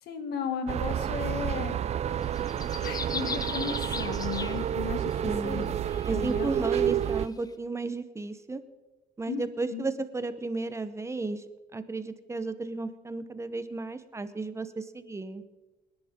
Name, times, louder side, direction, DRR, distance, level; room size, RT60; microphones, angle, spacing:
voice 1, 0.0-1.8 2.4-5.7 6.1-6.9 9.3-9.9, left 7 dB, 75° left, 6 dB, 2.2 m, -36 dB
sound 1, 0.7-7.3, right 9 dB, 40° right, 0.5 m, -30 dB
sound 2, 2.2-5.2 5.8-7.3, left 4 dB, 20° left, 0.9 m, -38 dB
voice 2, 5.2-5.7 6.1-8.6 9.2-11.4 11.7-15.4, right 3 dB, 15° right, 12 dB, 0.9 m, -34 dB
26.5 x 10.5 x 3.7 m, 1.1 s
cardioid pair, 110°, 17 cm